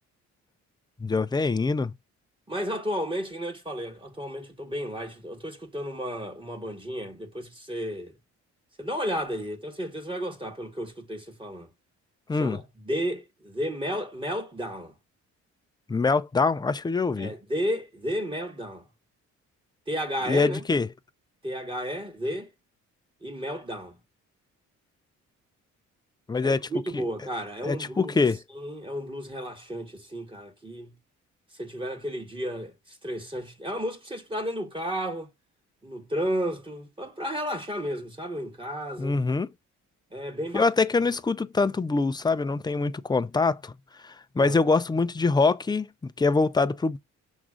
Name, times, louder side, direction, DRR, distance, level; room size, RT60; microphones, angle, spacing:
voice 1, 1.0-1.9 12.3-12.6 15.9-17.3 20.3-20.9 26.3-26.6 27.6-28.4 39.0-39.5 40.5-43.7 44.0-47.0, left 4 dB, 15° left, 0.5 m, -24 dB
voice 2, 2.5-8.1 8.8-11.7 12.4-14.9 17.2-18.8 19.9-20.6 21.4-22.5 23.2-24.0 26.4-30.9 31.5-35.3 35.8-39.2 40.1-40.7 44.4-44.6, equal, 15° right, 2.1 m, -33 dB
6.4 x 3.6 x 5.0 m
cardioid pair, 90°, 30 cm